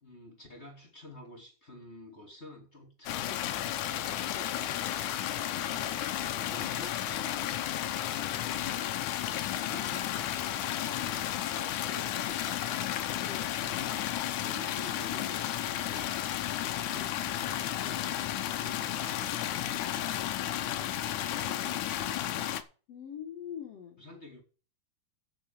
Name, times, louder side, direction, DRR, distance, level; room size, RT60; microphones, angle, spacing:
voice 1, 0.0-3.7 4.7-7.5 8.5-8.9 9.4-13.2 13.5-17.6 18.5-20.2 20.8-22.6 24.0-24.4, left 1 dB, 20° left, 2.4 m, -50 dB
sound 1, 3.1-22.6, left 12 dB, 90° left, 1.7 m, -33 dB
voice 2, 8.1-9.1 13.2-13.5 17.8-18.1 22.9-24.0, left 8 dB, 65° left, 1.5 m, -45 dB
8.0 x 7.9 x 7.2 m
omnidirectional pair, 4.6 m